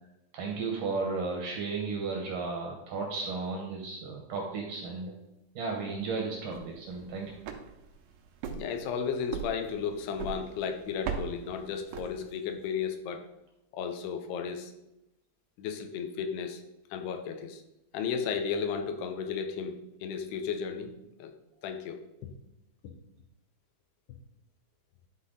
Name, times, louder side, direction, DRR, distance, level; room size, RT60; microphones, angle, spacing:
voice 1, 0.3-5.1 5.6-7.3, right 4 dB, 70° right, 1 dB, 2.1 m, -34 dB
sound 1, 6.3-12.6, right 7 dB, 85° right, 2.8 m, -41 dB
voice 2, 8.5-13.3 13.7-14.7 15.6-16.6 16.9-17.6 17.9-20.9 21.2-21.3 21.6-22.0, left 6 dB, 90° left, 6 dB, 2.8 m, -34 dB
11.0 x 4.2 x 3.8 m, 0.89 s
omnidirectional pair, 4.6 m